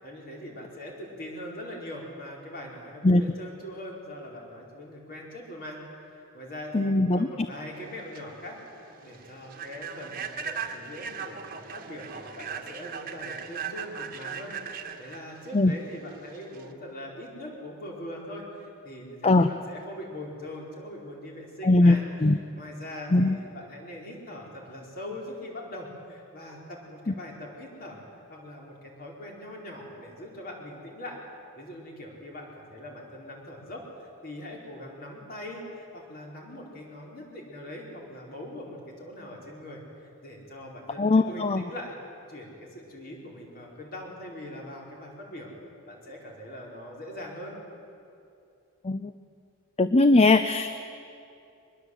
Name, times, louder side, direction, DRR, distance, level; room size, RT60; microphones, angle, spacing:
voice 1, 0.0-5.8 6.1-28.0 28.3-31.2 31.6-39.8 40.2-41.9 42.3-45.5 45.9-47.6, left 1 dB, 45° left, -1 dB, 4.9 m, -41 dB
voice 2, 6.7-7.3 15.5-15.7 19.2-19.5 21.6-22.0 22.2-22.4 23.1-23.4 41.0-41.6 48.8-49.1 49.8-50.7, left 2 dB, 30° left, 10 dB, 0.6 m, -20 dB
Human voice / Train, 7.8-16.7, right 6 dB, 40° right, 1.4 m, -38 dB
23.5 x 21.0 x 8.2 m, 2.6 s
head